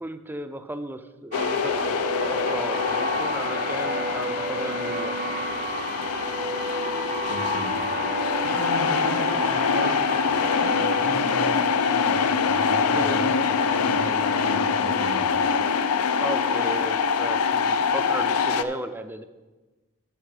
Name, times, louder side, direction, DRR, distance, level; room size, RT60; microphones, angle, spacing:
voice 1, 0.0-5.2 12.9-13.3 16.2-19.2, right 1 dB, 10° right, 9 dB, 0.4 m, -35 dB
sound 1, 1.3-18.6, left 5 dB, 80° left, 0.5 m, -24 dB
sound 2, 1.3-11.0, right 3 dB, 40° right, 0.7 m, -32 dB
voice 2, 7.3-8.0 8.4-15.4, right 1 dB, 75° right, 4 dB, 1.7 m, -36 dB
10.0 x 6.7 x 4.8 m, 1.2 s
head